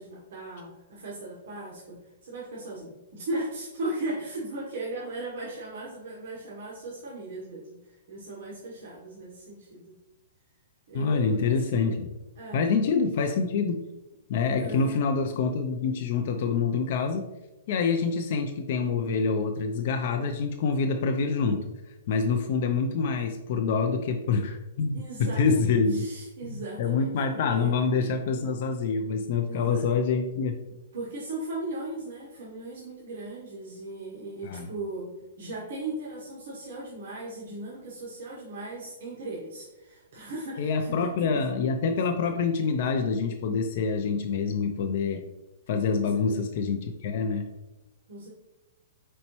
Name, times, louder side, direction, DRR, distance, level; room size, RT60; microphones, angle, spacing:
voice 1, 0.0-9.9 10.9-11.8 12.4-12.6 14.5-15.0 24.9-27.7 29.4-29.9 30.9-35.1 35.4-41.4 46.0-46.4 48.1-48.3, right 2 dB, 55° right, -4 dB, 0.9 m, -38 dB
voice 2, 10.9-12.1 12.5-13.8 14.3-17.3 17.7-21.7 22.1-26.0 26.4-30.5 34.4-34.7 40.6-45.2 45.7-47.5, left 5 dB, 40° left, 5 dB, 0.3 m, -26 dB
4.4 x 4.1 x 2.9 m, 1.0 s
hypercardioid pair, 175°, 0 cm